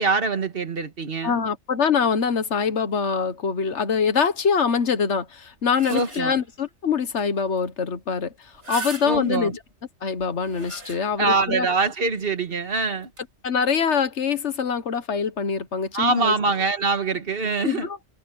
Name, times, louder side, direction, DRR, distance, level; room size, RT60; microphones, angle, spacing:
voice 1, 0.0-1.4 5.9-6.4 9.0-9.6 11.2-13.1 15.9-17.9, right 4 dB, 55° right, 1.6 m, -24 dB
voice 2, 1.2-9.5 10.0-11.7 13.4-16.3 17.6-18.0, left 6 dB, 85° left, 1.6 m, -24 dB
sound 1, 5.4-6.6 7.2-7.3 7.6-7.7 8.4-9.5 10.2-11.4 11.8-11.9 13.0-13.2, right 2 dB, 80° right, 4.6 m, -38 dB
omnidirectional pair, 1.2 m